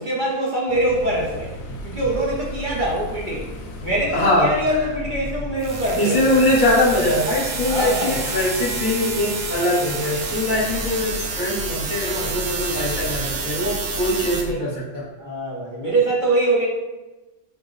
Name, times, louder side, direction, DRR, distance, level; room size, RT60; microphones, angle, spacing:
voice 1, 0.0-1.6 1.8-6.3 7.6-8.2 15.2-16.7, right 1 dB, 50° right, -5 dB, 0.9 m, -23 dB
sound 1, 0.7-14.6, left 1 dB, 70° left, 0.8 m, -35 dB
voice 2, 4.1-4.5 6.0-15.0, left 1 dB, 45° left, -6 dB, 1.0 m, -22 dB
sound 2, 5.6-14.4, right 4 dB, 80° right, 0.9 m, -29 dB
4.5 x 2.0 x 3.8 m, 1.1 s
omnidirectional pair, 1.2 m